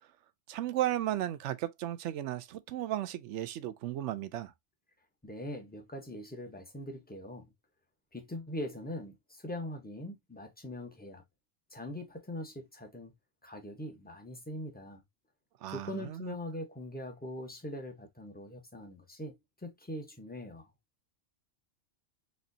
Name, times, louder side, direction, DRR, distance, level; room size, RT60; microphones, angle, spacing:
voice 1, 0.5-4.5 15.6-16.3, right 13 dB, 80° right, 0.9 m, -35 dB
voice 2, 5.2-7.5 8.1-11.2 11.7-13.1 13.4-15.0 15.7-20.7, left 1 dB, 10° left, 0.8 m, -42 dB
4.3 x 2.9 x 2.6 m
omnidirectional pair, 1.2 m